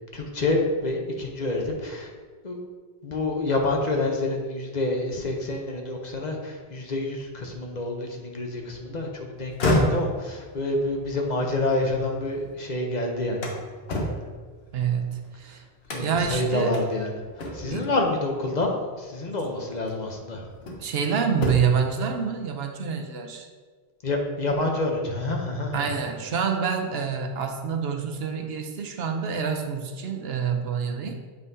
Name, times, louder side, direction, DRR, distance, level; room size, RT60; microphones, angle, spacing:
voice 1, 0.1-2.1 2.4-2.6 3.0-13.5 15.9-17.1 17.5-18.7 19.0-20.5 24.0-26.0, left 2 dB, 45° left, 2 dB, 0.9 m, -27 dB
sound 1, 9.4-12.5 12.9-15.3 15.8-16.3 16.7-16.9 17.4-17.9 19.1-19.3 19.9-21.0 21.3-21.9, left 1 dB, 80° left, 1.3 m, -30 dB
voice 2, 14.7-15.6 16.0-16.8 17.7-17.9 20.8-23.5 25.7-31.2, right 6 dB, 80° right, 4 dB, 0.9 m, -27 dB
8.0 x 5.5 x 2.7 m, 1.5 s
omnidirectional pair, 1.0 m